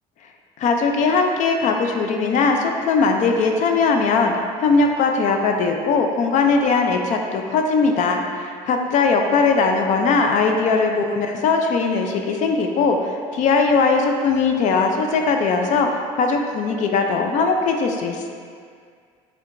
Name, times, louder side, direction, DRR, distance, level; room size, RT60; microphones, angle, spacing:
voice 1, 0.6-4.3 4.6-18.3, left 4 dB, 55° left, 3 dB, 0.4 m, -19 dB
4.5 x 3.3 x 2.5 m, 2.1 s
supercardioid pair, 90°, 15 cm